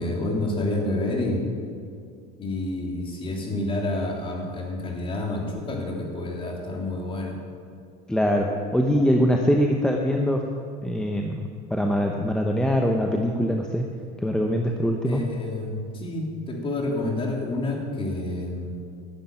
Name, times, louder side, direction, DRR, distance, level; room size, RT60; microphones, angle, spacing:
voice 1, 0.0-1.4 2.4-7.4 15.0-18.7, left 2 dB, 25° left, -1 dB, 3.3 m, -29 dB
voice 2, 8.1-10.4 10.8-13.9 14.2-15.2, equal, 5° left, 1 dB, 1.0 m, -23 dB
12.0 x 8.0 x 9.1 m, 2.3 s
supercardioid pair, 115°, 20 cm